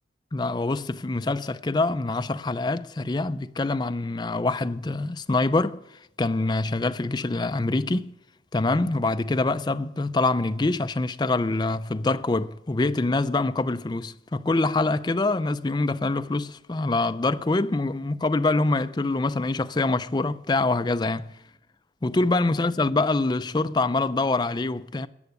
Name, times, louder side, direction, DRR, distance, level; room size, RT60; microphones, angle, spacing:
voice 1, 0.3-5.9 6.2-8.1 8.5-21.4 22.0-25.1, left 2 dB, 25° left, 0.4 m, -25 dB
13.5 x 8.1 x 9.6 m
head